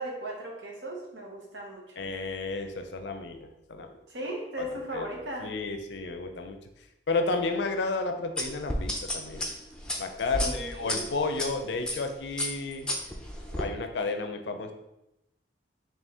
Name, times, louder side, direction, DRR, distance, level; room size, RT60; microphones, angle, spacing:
voice 1, 0.0-2.1 4.1-5.5 10.3-11.1, right 1 dB, 90° right, 0 dB, 0.9 m, -37 dB
voice 2, 2.0-3.9 4.6-4.7 4.9-5.1 5.4-6.6 7.1-9.4 10.0-12.9 13.5-14.7, left 3 dB, 85° left, 6 dB, 0.5 m, -32 dB
sound 1, 8.4-11.5 11.9-12.1 12.4-13.6, left 1 dB, 5° left, 0.4 m, -32 dB
4.3 x 2.8 x 3.5 m, 0.89 s
head